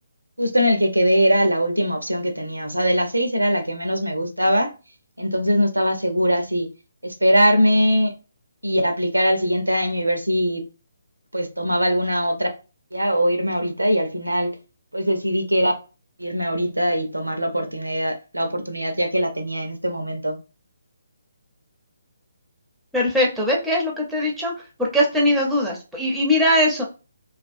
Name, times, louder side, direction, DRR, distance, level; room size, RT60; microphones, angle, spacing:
voice 1, 0.4-4.7 5.2-6.7 7.0-8.1 8.6-10.6 11.3-12.5 12.9-14.5 14.9-15.7 16.2-20.4, equal, 85° right, 0.6 m, -21 dB
voice 2, 22.9-24.5 24.9-26.8, left 1 dB, 5° right, 0.6 m, -20 dB
2.3 x 2.3 x 2.5 m
figure-of-eight pair, 140°, 0 cm